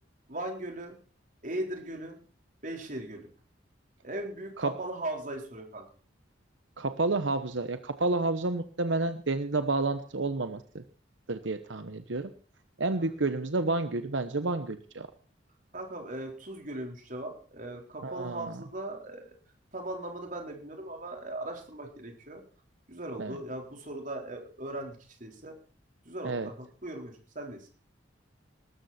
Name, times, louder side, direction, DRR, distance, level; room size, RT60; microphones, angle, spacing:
voice 1, 0.3-1.0 1.4-2.2 2.6-3.3 4.0-5.8 13.0-13.1 15.7-19.3 19.7-22.4 22.9-25.5 26.0-27.7, right 1 dB, 45° right, 2 dB, 4.2 m, -38 dB
voice 2, 6.8-10.8 11.3-12.3 12.8-15.1 18.0-18.5 23.2-23.4 26.2-26.5, right 3 dB, 85° right, 10 dB, 1.1 m, -30 dB
19.5 x 13.5 x 4.4 m, 0.40 s
head